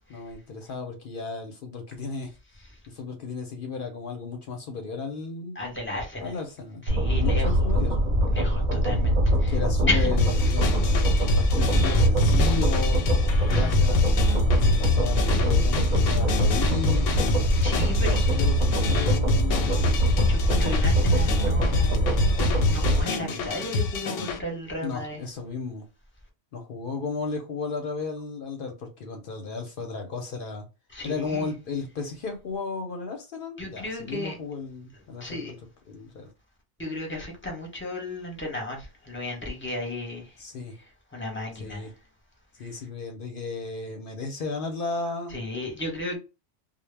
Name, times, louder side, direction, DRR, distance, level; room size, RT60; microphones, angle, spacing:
voice 1, 0.1-2.4 2.9-5.6 6.2-6.8 7.1-8.0 9.3-13.0 13.5-17.1 18.0-20.0 24.8-25.9 26.5-30.7 31.0-35.6 35.9-36.3 40.4-40.8 41.6-41.9 42.6-45.4, left 4 dB, 60° left, 0.6 m, -34 dB
voice 2, 5.6-6.3 6.9-7.5 8.3-9.2 9.4-9.5 9.9-10.1 17.6-18.3 20.3-22.1 22.7-25.2 30.9-31.5 33.6-34.4 35.2-35.5 36.8-40.3 41.1-41.9 45.3-46.2, left 1 dB, 15° left, 0.6 m, -33 dB
sound 1, 6.9-23.0, equal, 50° right, 0.6 m, -23 dB
sound 2, 10.2-24.4, left 3 dB, 85° left, 0.9 m, -28 dB
2.0 x 2.0 x 3.2 m
omnidirectional pair, 1.2 m